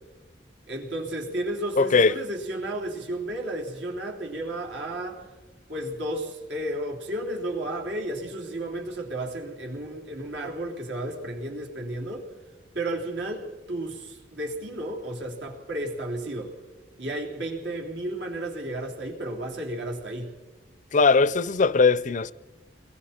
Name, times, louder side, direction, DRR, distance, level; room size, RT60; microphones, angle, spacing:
voice 1, 0.7-5.3 5.7-12.3 12.7-16.6 17.0-20.3, right 1 dB, 75° right, 3.6 m, -33 dB
voice 2, 1.8-2.1 20.9-22.3, left 4 dB, 45° left, 0.5 m, -20 dB
29.0 x 22.0 x 4.4 m
head